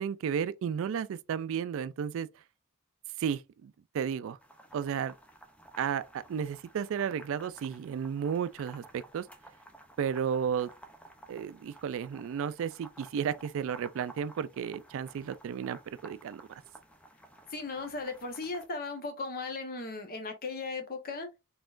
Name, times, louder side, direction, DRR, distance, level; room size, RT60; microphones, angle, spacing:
voice 1, 0.0-2.3 3.2-4.4 4.7-5.1 5.8-9.3 10.0-10.7 11.3-16.4, right 7 dB, 65° right, 0.3 m, -33 dB
sound 1, 4.4-18.7, right 1 dB, 5° left, 0.6 m, -54 dB
voice 2, 17.5-21.3, left 3 dB, 45° left, 1.0 m, -37 dB
4.1 x 3.7 x 2.5 m
head